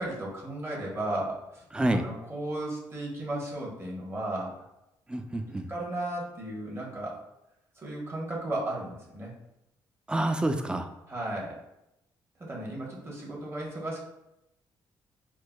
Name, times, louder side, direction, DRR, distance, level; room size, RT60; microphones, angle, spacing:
voice 1, 0.0-1.6 2.0-4.5 5.7-7.2 7.8-9.3 11.1-11.6 12.4-14.0, right 1 dB, 30° right, -3 dB, 1.1 m, -34 dB
voice 2, 1.7-2.1 5.1-5.7 10.1-10.9, right 1 dB, 10° right, 6 dB, 0.4 m, -28 dB
4.4 x 2.1 x 2.3 m, 0.88 s
supercardioid pair, 70°, 9 cm